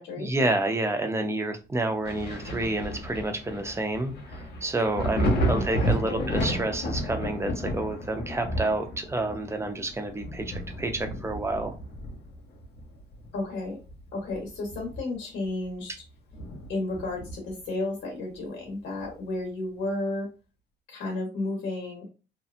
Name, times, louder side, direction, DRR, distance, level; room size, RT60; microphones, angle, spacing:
voice 1, 0.2-11.7, right 2 dB, 15° right, 5 dB, 0.5 m, -29 dB
Thunder, 2.0-13.4 13.8-15.3 15.7-15.8 16.3-17.6 19.0-19.1, equal, 65° left, 0.9 m, -32 dB
voice 2, 5.0-6.3 13.3-13.8 14.1-15.9 16.7-20.3 20.9-22.0, left 2 dB, 80° left, -1 dB, 1.1 m, -33 dB
2.7 x 2.3 x 2.4 m, 0.31 s
cardioid pair, 105°, 19 cm